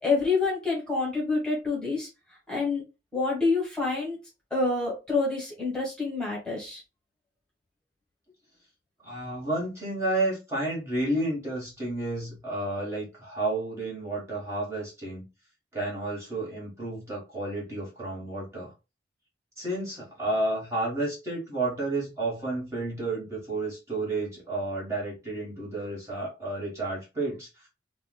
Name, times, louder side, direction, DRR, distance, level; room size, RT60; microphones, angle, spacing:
voice 1, 0.0-2.1 2.5-2.8 3.1-4.2 4.5-6.8, left 3 dB, 5° left, 1.3 m, -27 dB
voice 2, 9.0-15.2 15.7-18.7 19.6-27.7, right 2 dB, 15° right, 1.3 m, -31 dB
4.3 x 2.1 x 2.2 m
head